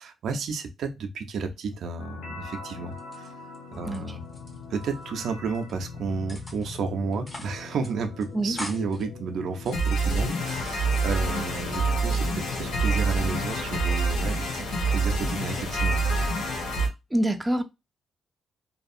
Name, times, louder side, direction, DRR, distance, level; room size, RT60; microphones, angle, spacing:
voice 1, 0.0-3.3 3.8-4.2 4.7-16.1, right 4 dB, 75° right, 0.5 m, -32 dB
sound 1, 2.0-16.9, right 2 dB, 90° left, 0.8 m, -29 dB
sound 2, 2.9-4.0 4.2-5.2 5.5-5.9 6.3-6.8 7.1-7.6 7.8-7.9 8.2-9.0 9.5-11.7 12.1-12.8, left 1 dB, 30° left, 1.0 m, -43 dB
voice 2, 17.1-17.6, right 1 dB, 10° right, 0.5 m, -25 dB
2.6 x 2.3 x 2.5 m
supercardioid pair, 65°, 0 cm